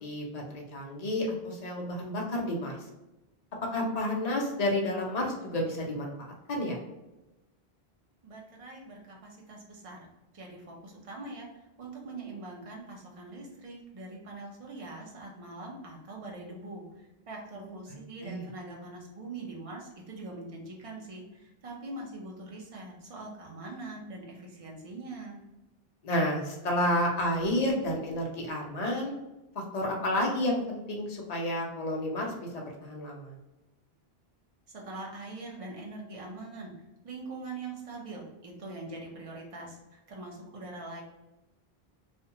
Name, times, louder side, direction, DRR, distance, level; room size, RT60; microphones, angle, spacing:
voice 1, 0.0-2.7 3.7-6.8 17.6-17.8 18.2-18.5 26.0-29.1 29.5-33.3, left 1 dB, 45° left, -1 dB, 0.7 m, -31 dB
voice 2, 8.2-10.0 10.3-16.8 17.3-25.4 34.7-36.7 37.0-41.0, right 2 dB, 40° right, -2 dB, 0.6 m, -43 dB
2.5 x 2.2 x 2.8 m, 0.98 s
omnidirectional pair, 1.0 m